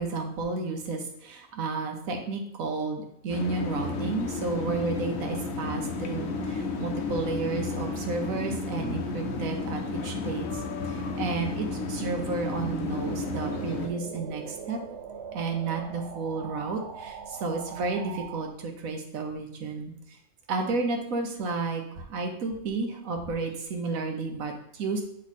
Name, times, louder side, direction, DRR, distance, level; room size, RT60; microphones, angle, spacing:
voice 1, 0.0-14.8 15.3-19.9 20.5-25.0, right 3 dB, 85° right, 3 dB, 1.3 m, -32 dB
sound 1, 3.3-13.9, left 3 dB, 80° left, 1.2 m, -32 dB
sound 2, 10.8-18.5, right 6 dB, 60° right, 0.8 m, -42 dB
7.5 x 3.5 x 4.1 m, 0.77 s
omnidirectional pair, 1.4 m